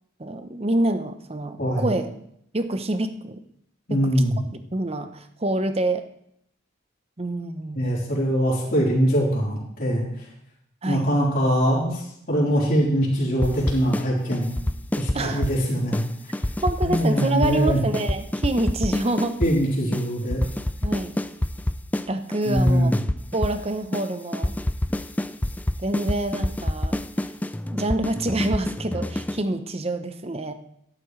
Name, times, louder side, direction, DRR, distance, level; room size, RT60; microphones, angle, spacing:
voice 1, 0.2-2.1 2.5-3.4 3.9-4.1 4.7-6.0 7.2-7.8 10.8-11.1 15.1-15.5 16.6-19.4 20.8-21.2 22.1-22.9 23.3-24.5 25.8-27.0 27.7-30.5, right 2 dB, 30° right, 9 dB, 0.8 m, -26 dB
voice 2, 1.6-1.9 3.9-4.3 7.7-10.3 10.8-14.6 14.9-16.4 16.8-17.8 19.4-20.4 22.4-23.0, equal, 45° left, -5 dB, 4.0 m, -23 dB
sound 1, 13.4-14.1 14.3-15.6 15.9-16.1 16.3-19.5 19.9-20.0 20.3-22.1 22.3-23.6 23.9-24.0 24.3-29.4, left 1 dB, 10° left, 0.3 m, -26 dB
12.5 x 11.5 x 3.2 m, 0.73 s
head